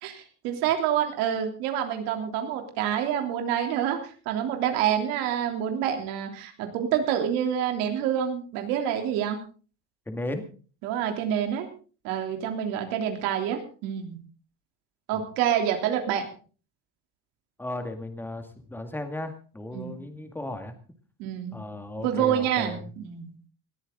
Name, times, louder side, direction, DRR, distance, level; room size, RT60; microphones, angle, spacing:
voice 1, 0.0-9.4 10.8-11.7 12.0-14.2 15.1-16.3 19.7-19.9 21.2-21.6 22.0-23.3, right 9 dB, 85° right, 4 dB, 3.3 m, -27 dB
voice 2, 10.1-10.4 15.1-15.2 17.6-20.7 21.5-22.8, left 1 dB, 5° left, 6 dB, 2.0 m, -35 dB
20.0 x 14.0 x 3.9 m, 0.38 s
cardioid pair, 160°, 33 cm